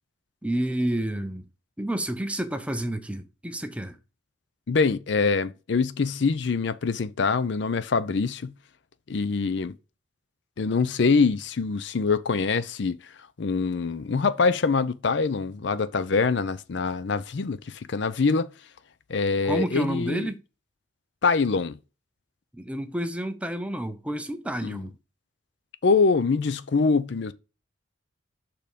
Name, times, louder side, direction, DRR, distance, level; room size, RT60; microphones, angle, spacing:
voice 1, 0.4-1.4 1.8-4.0 19.4-20.4 22.5-24.9, right 1 dB, 5° right, 0.6 m, -30 dB
voice 2, 4.7-8.5 9.1-9.7 10.6-13.0 13.4-18.5 19.1-20.3 21.2-21.8 24.6-24.9 25.8-27.3, left 4 dB, 60° left, 0.5 m, -24 dB
6.7 x 3.7 x 5.1 m
head